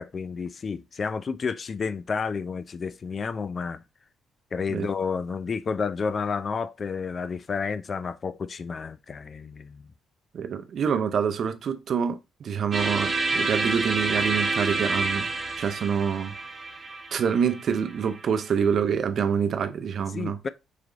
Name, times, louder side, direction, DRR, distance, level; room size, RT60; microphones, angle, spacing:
voice 1, 0.0-3.8 4.5-9.9 20.1-20.5, left 5 dB, 40° left, 0.4 m, -31 dB
voice 2, 10.3-15.3 15.6-16.3 17.1-20.4, right 7 dB, 60° right, 0.5 m, -26 dB
sound 1, 12.7-18.6, right 3 dB, 35° right, 1.0 m, -29 dB
4.8 x 3.0 x 2.5 m
cardioid pair, 90°, 0 cm